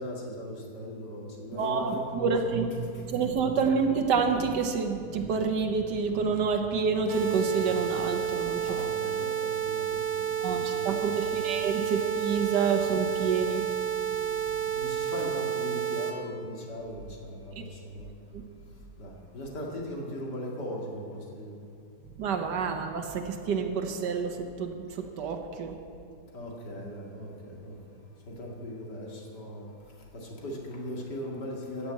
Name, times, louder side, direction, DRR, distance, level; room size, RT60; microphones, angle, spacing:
voice 1, 0.0-2.3 2.9-3.0 8.7-11.4 14.7-18.1 19.0-21.7 26.3-27.8 28.3-31.9, left 1 dB, 85° left, -2 dB, 2.7 m, -39 dB
voice 2, 1.5-8.8 10.4-13.6 18.3-18.4 22.2-25.7, right 5 dB, 90° right, 5 dB, 1.6 m, -28 dB
sound 1, 7.1-16.1, right 9 dB, 55° right, 1.6 m, -30 dB
14.5 x 6.8 x 8.3 m, 2.4 s
omnidirectional pair, 1.8 m